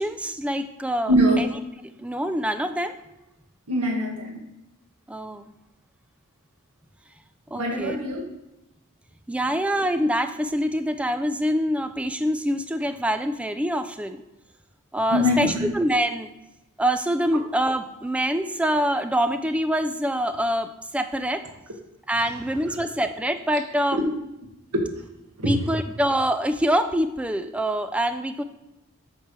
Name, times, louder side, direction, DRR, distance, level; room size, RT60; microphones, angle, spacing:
voice 1, 0.0-1.1 1.4-1.5 2.0-2.9 5.1-5.5 7.5-8.0 9.3-14.2 14.9-16.3 16.8-21.4 22.1-24.0 25.4-28.4, equal, 5° right, 9 dB, 0.3 m, -25 dB
voice 2, 1.1-1.5 3.7-4.4 7.5-8.3 15.1-15.7 22.2-22.4 22.7-22.8 23.9-24.0 25.4-25.7, equal, 85° right, 1 dB, 1.5 m, -23 dB
8.6 x 3.3 x 6.0 m, 0.94 s
head